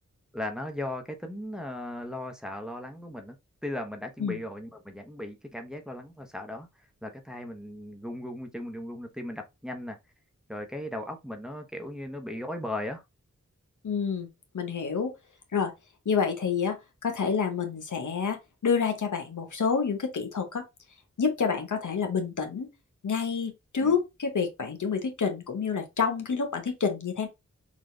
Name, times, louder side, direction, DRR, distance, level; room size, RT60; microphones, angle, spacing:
voice 1, 0.3-3.4 3.6-6.7 7.0-10.0 10.5-13.0 23.8-23.9, left 1 dB, ahead, 0.8 m, -37 dB
voice 2, 13.8-14.3 14.5-15.1 15.5-15.7 16.0-16.8 17.0-20.6 21.2-22.7 23.0-27.3, left 6 dB, 80° left, 0.9 m, -28 dB
3.9 x 2.4 x 3.2 m
wide cardioid pair, 45°, 30 cm